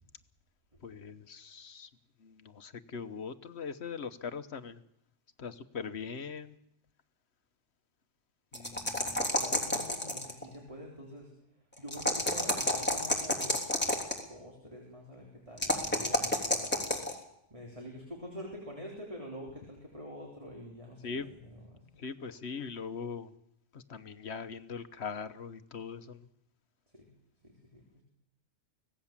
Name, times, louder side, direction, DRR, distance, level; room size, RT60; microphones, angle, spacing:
voice 1, 0.8-1.9 2.2-4.8 5.4-6.5 8.5-9.2 21.0-21.3 22.0-23.3 23.7-26.2, left 5 dB, 60° left, 11 dB, 1.4 m, -41 dB
sound 1, 8.5-10.4 11.9-14.2 15.6-17.1, left 1 dB, 10° left, 3.3 m, -29 dB
voice 2, 9.3-11.3 11.8-13.7 14.3-17.0 17.5-22.0 26.9-27.1 27.4-28.0, equal, 25° right, -1 dB, 3.8 m, -46 dB
24.5 x 17.5 x 7.4 m, 0.76 s
omnidirectional pair, 1.2 m